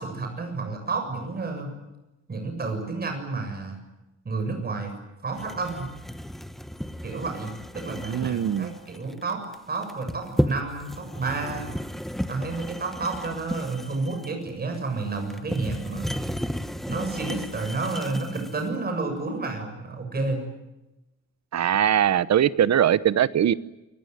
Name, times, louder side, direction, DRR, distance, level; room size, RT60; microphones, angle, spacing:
voice 1, 0.0-1.7 2.3-3.8 4.2-4.9 5.2-5.9 7.0-9.4 9.7-11.7 12.3-16.2 16.9-20.4, right 3 dB, 30° right, 4 dB, 7.4 m, -30 dB
sound 1, 5.3-18.7, equal, ahead, 1.0 m, -33 dB
voice 2, 8.1-8.7 21.5-23.5, right 10 dB, 65° right, 16 dB, 1.0 m, -21 dB
29.0 x 20.5 x 9.5 m, 1.0 s
wide cardioid pair, 170°, 29 cm